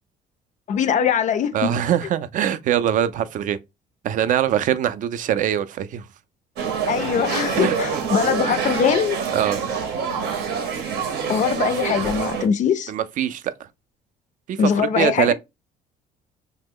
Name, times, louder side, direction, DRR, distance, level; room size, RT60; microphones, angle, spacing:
voice 1, 0.7-1.7 6.9-9.2 11.3-12.9 14.6-15.3, left 7 dB, 50° left, 0.4 m, -21 dB
voice 2, 1.5-3.6 4.0-6.0 7.5-8.0 9.3-9.6 12.9-13.7 14.5-15.3, right 10 dB, 50° right, 0.4 m, -23 dB
sound 1, 6.6-12.5, right 6 dB, 80° right, 0.8 m, -26 dB
3.0 x 2.0 x 3.5 m
cardioid pair, 110°, 17 cm